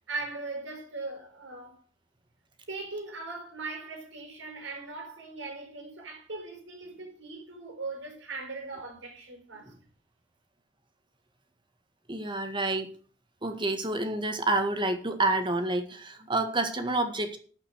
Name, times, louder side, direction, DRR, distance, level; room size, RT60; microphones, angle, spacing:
voice 1, 0.1-1.8 2.7-9.7, right 3 dB, 75° right, 5.1 m, -39 dB
voice 2, 12.1-12.9 13.4-17.4, right 2 dB, 25° right, 1.8 m, -28 dB
12.5 x 5.8 x 7.9 m
head